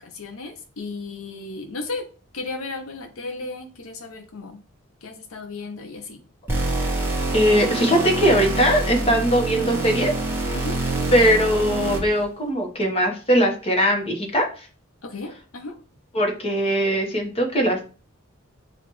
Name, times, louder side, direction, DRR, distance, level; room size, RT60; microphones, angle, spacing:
voice 1, 0.0-2.1 2.3-4.6 5.0-6.2 10.5-10.8 15.0-15.8, left 3 dB, 75° left, 5 dB, 0.6 m, -34 dB
sound 1, 6.5-12.2, right 2 dB, 10° right, 1.0 m, -26 dB
voice 2, 7.3-10.1 11.1-14.7 16.1-17.8, equal, 30° left, 2 dB, 1.0 m, -20 dB
5.8 x 2.4 x 3.0 m, 0.37 s
head